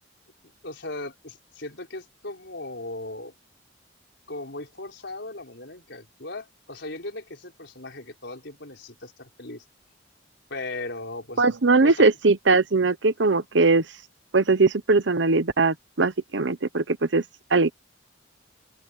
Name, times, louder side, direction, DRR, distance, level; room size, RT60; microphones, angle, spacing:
voice 1, 0.6-3.3 4.3-9.6 10.5-12.1, left 2 dB, 65° left, 5.7 m, -37 dB
voice 2, 11.4-13.8 14.3-17.2 17.5-17.7, right 3 dB, 70° right, 0.9 m, -20 dB
open air
head